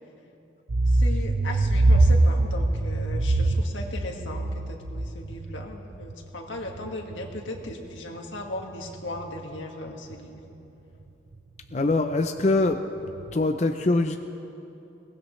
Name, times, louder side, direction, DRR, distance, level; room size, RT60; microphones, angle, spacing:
sound 1, 0.7-7.9 8.3-9.6 10.1-10.2 10.5-10.6 11.0-11.1 11.3-11.4 11.7-11.9 12.2-13.3, right 2 dB, 60° right, 0.6 m, -24 dB
voice 1, 0.9-10.6, left 2 dB, 90° left, 2 dB, 1.7 m, -37 dB
voice 2, 11.7-12.8 13.3-14.2, left 2 dB, 35° left, 6 dB, 0.5 m, -23 dB
22.5 x 19.0 x 3.2 m, 2.9 s
head